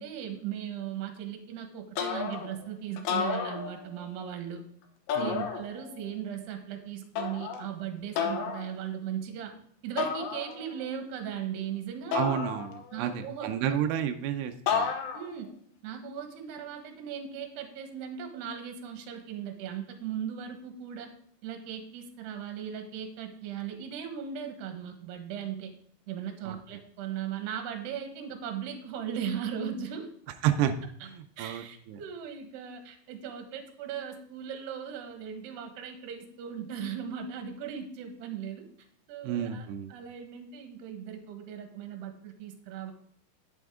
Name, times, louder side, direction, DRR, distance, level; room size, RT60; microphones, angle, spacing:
voice 1, 0.0-4.6 5.2-9.5 9.8-12.2 12.9-13.8 15.1-15.5 15.8-21.1 21.4-25.7 26.1-30.1 31.4-38.7 39.1-42.9, right 8 dB, 70° right, 5 dB, 3.0 m, -38 dB
sound 1, 2.0-2.6 3.0-4.1 5.1-6.0 7.2-7.7 8.2-8.7 10.0-10.8 12.1-13.1 14.7-15.4, left 6 dB, 75° left, 3.2 m, -32 dB
voice 2, 5.2-5.5 12.1-14.9 26.5-26.6 30.4-30.7 31.0-32.0 39.2-39.9, right 10 dB, 85° right, 6 dB, 2.4 m, -31 dB
10.5 x 8.6 x 3.6 m, 0.62 s
omnidirectional pair, 5.6 m